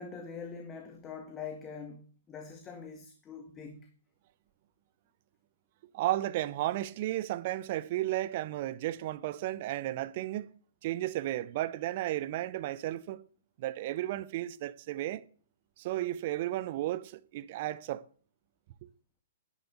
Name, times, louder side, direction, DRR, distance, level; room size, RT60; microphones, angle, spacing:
voice 1, 0.0-3.9, left 5 dB, 20° left, 1.8 m, -44 dB
voice 2, 5.9-10.5 10.8-13.2 13.6-15.2 15.8-18.0, right 14 dB, 45° right, 0.8 m, -33 dB
10.5 x 10.0 x 8.2 m
figure-of-eight pair, 115°, 0 cm